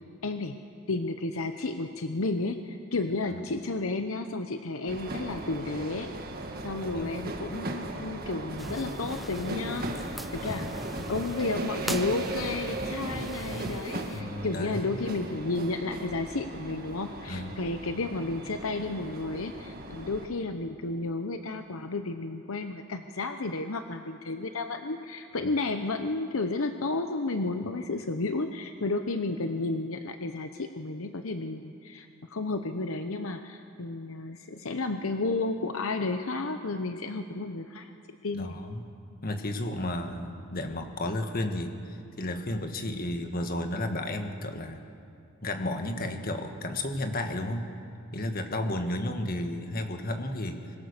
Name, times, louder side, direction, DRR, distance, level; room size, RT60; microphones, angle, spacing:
voice 1, 0.2-0.6 0.9-6.1 6.6-10.7 11.1-37.9 38.2-38.6, left 3 dB, 65° left, 7 dB, 0.9 m, -32 dB
sound 1, 4.9-20.3, right 1 dB, 40° right, 1.8 m, -37 dB
sound 2, 8.6-14.2, equal, ahead, 0.6 m, -41 dB
voice 2, 14.1-14.9 17.3-17.5 25.4-25.5 38.4-38.9 39.2-44.9 45.4-47.7 48.1-50.6, left 1 dB, 40° left, 5 dB, 1.6 m, -33 dB
24.5 x 21.0 x 6.7 m, 2.5 s
head